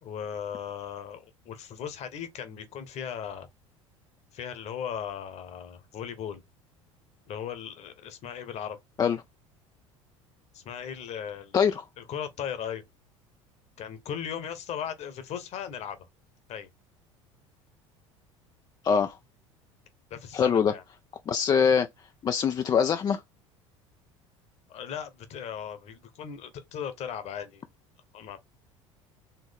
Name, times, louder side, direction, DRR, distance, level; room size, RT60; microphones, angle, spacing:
voice 1, 0.0-3.5 4.3-6.4 7.3-8.8 10.5-11.6 12.0-12.8 13.8-16.0 16.5-16.7 20.1-20.8 24.7-27.6 28.1-28.4, left 8 dB, 40° left, 1.1 m, -37 dB
voice 2, 18.8-19.2 20.3-20.7 21.3-21.9 22.2-23.2, left 7 dB, 25° left, 0.4 m, -23 dB
4.5 x 3.1 x 3.5 m
figure-of-eight pair, 65°, 17 cm